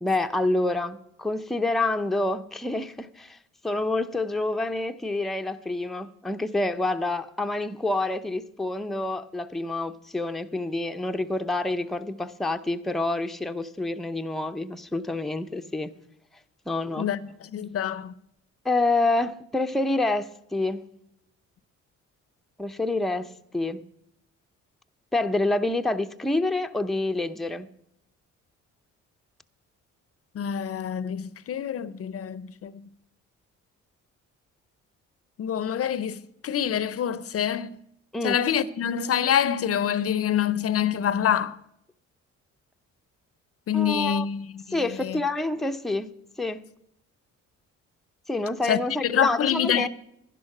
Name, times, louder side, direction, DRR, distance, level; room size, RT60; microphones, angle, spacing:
voice 1, 0.0-3.4 3.6-15.9 16.7-17.1 18.6-20.9 22.6-23.8 25.1-27.7 38.1-38.4 43.7-44.3 44.7-46.1 46.4-46.6 48.3-49.9, left 2 dB, ahead, 0.6 m, -27 dB
voice 2, 17.5-18.1 30.3-32.7 35.4-37.8 38.2-41.6 43.7-45.2 48.7-49.9, left 9 dB, 50° left, 0.6 m, -26 dB
11.0 x 11.0 x 5.9 m
cardioid pair, 90°, 30 cm